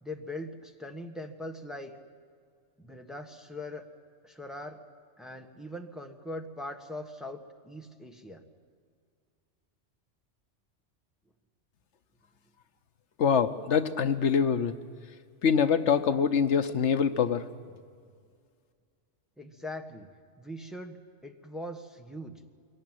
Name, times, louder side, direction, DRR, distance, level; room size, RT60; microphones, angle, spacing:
voice 1, 0.0-2.0 2.8-3.8 4.2-4.8 5.2-8.5 19.4-20.1 20.4-22.3, left 1 dB, ahead, 3 dB, 1.4 m, -41 dB
voice 2, 13.2-14.7 15.4-17.5, left 7 dB, 75° left, 10 dB, 1.1 m, -24 dB
22.5 x 18.0 x 9.1 m, 2.2 s
omnidirectional pair, 1.2 m